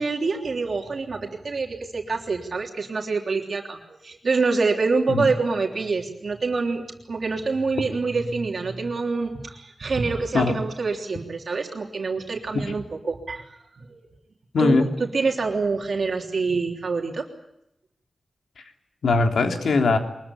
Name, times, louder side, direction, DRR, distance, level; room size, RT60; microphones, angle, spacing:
voice 1, 0.0-14.0 14.6-17.3, right 4 dB, 50° right, 1 dB, 3.3 m, -26 dB
voice 2, 14.5-14.9 19.0-20.0, left 3 dB, 80° left, 4 dB, 3.4 m, -20 dB
23.5 x 22.0 x 10.0 m, 0.83 s
wide cardioid pair, 145°, 0 cm